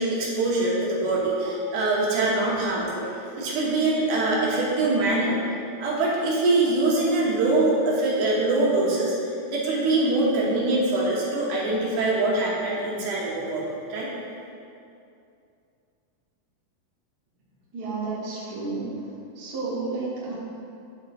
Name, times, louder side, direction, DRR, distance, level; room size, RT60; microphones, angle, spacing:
voice 1, 0.0-5.4 5.8-9.2 9.5-14.1, right 2 dB, 75° right, -5 dB, 2.5 m, -23 dB
voice 2, 17.7-18.9 19.3-20.3, right 3 dB, 50° right, -7 dB, 1.1 m, -31 dB
8.9 x 3.6 x 4.1 m, 2.5 s
omnidirectional pair, 3.8 m